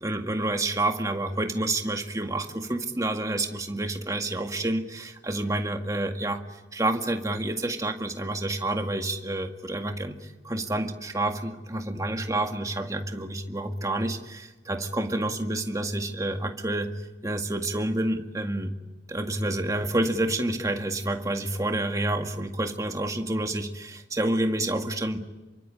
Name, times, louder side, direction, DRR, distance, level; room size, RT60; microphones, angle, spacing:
voice 1, 0.0-18.7 19.1-25.2, right 1 dB, 20° right, 4 dB, 2.0 m, -29 dB
28.0 x 24.0 x 8.7 m, 1.1 s
head